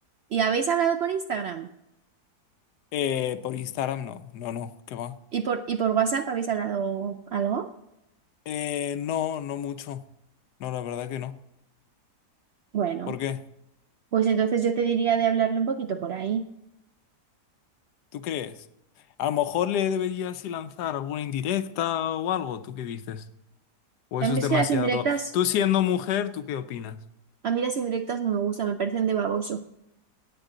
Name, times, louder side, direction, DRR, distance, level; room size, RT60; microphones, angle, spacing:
voice 1, 0.3-1.7 5.3-7.7 12.7-13.1 14.1-16.5 24.2-25.3 27.4-29.6, right 7 dB, 90° right, 0.5 m, -26 dB
voice 2, 2.9-5.2 8.5-10.0 10.6-11.4 13.1-13.4 18.1-18.7 19.2-23.3 24.1-25.1 25.3-27.0, left 10 dB, 80° left, 1.3 m, -29 dB
17.0 x 9.0 x 3.8 m
omnidirectional pair, 1.7 m